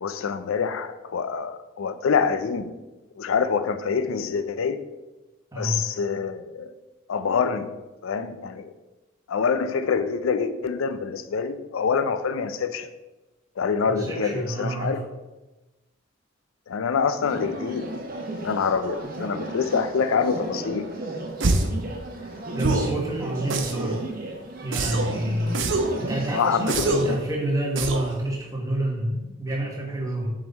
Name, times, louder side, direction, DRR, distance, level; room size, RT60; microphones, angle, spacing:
voice 1, 0.0-2.7 3.2-4.9 5.6-6.7 7.1-7.8 8.0-8.7 9.3-12.9 13.6-15.1 16.7-17.9 18.4-20.9 26.3-27.2, left 5 dB, 90° left, 11 dB, 0.4 m, -26 dB
voice 2, 5.5-5.8 13.9-15.0 22.2-22.3 22.5-24.0 24.6-25.6 26.0-30.3, right 1 dB, 15° right, -1 dB, 1.3 m, -28 dB
sound 1, 17.2-27.2, right 2 dB, 45° right, 0.9 m, -34 dB
sound 2, 21.4-21.8 22.6-23.0 23.5-24.0 24.7-25.2 25.5-26.0 26.7-27.2 27.8-28.1, right 2 dB, 70° right, 0.7 m, -25 dB
7.6 x 3.9 x 4.0 m, 1.1 s
head